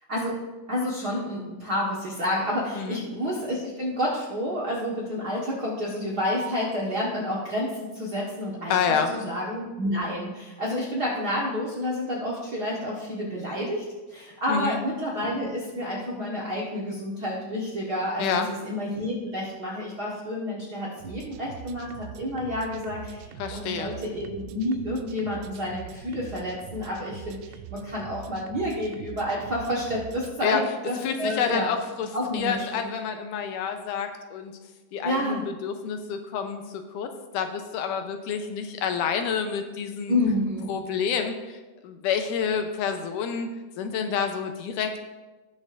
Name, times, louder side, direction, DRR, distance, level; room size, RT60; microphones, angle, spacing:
voice 1, 0.7-8.8 9.1-13.8 14.1-31.7 32.1-32.9 35.0-35.4 40.1-40.7, left 1 dB, 50° right, -5 dB, 1.3 m, -29 dB
voice 2, 8.7-9.1 14.5-14.8 18.2-18.5 23.4-23.9 30.4-30.6 31.0-32.1 32.3-34.5 34.9-36.6 36.9-40.2 40.7-43.5 43.8-45.0, left 7 dB, 80° left, 6 dB, 2.2 m, -28 dB
sound 1, 21.0-30.3, right 11 dB, 85° right, 2.2 m, -43 dB
19.0 x 6.4 x 2.6 m, 1.2 s
omnidirectional pair, 3.8 m